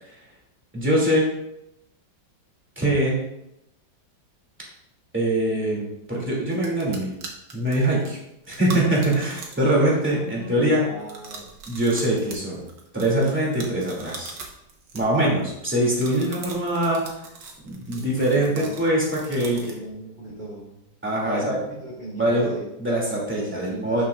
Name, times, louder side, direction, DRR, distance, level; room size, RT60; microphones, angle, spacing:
voice 1, 0.7-1.2 2.8-3.2 5.1-7.1 7.5-8.2 8.5-10.8 11.7-12.6 12.9-14.3 14.9-17.1 17.6-19.6 21.0-21.6 22.2-22.5 22.8-24.0, right 1 dB, 5° right, -5 dB, 2.4 m, -23 dB
sound 1, 6.1-6.2 6.5-9.7 10.0-10.4 11.0-15.4 15.8-19.9, right 4 dB, 75° right, 1.8 m, -41 dB
voice 2, 10.2-11.5 17.9-20.8 21.2-22.7 23.4-24.0, right 1 dB, 25° right, -8 dB, 1.9 m, -38 dB
12.0 x 6.0 x 2.4 m, 0.85 s
omnidirectional pair, 2.0 m